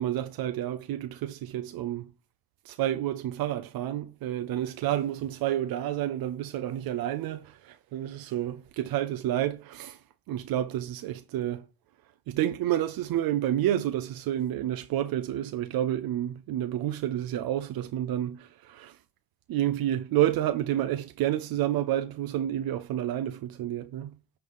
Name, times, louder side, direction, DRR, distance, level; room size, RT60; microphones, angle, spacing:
voice 1, 0.0-2.1 2.6-10.0 10.3-11.7 12.3-19.0 19.5-24.1, right 12 dB, 90° right, 0.6 m, -29 dB
9.4 x 3.4 x 5.5 m
cardioid pair, 115°, 34 cm